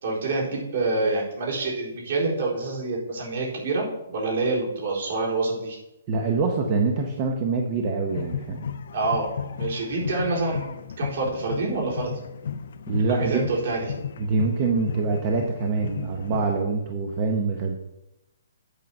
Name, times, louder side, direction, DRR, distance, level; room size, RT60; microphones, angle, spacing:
voice 1, 0.0-5.8 8.9-9.3 9.6-12.1 13.1-13.9, right 3 dB, 55° right, -3 dB, 4.0 m, -27 dB
voice 2, 6.1-8.6 12.9-13.4 14.2-17.8, right 4 dB, 25° right, 2 dB, 0.8 m, -25 dB
sound 1, 8.1-16.9, left 7 dB, 60° left, 0.6 m, -35 dB
8.3 x 7.4 x 5.4 m, 0.90 s
hypercardioid pair, 170°, 0 cm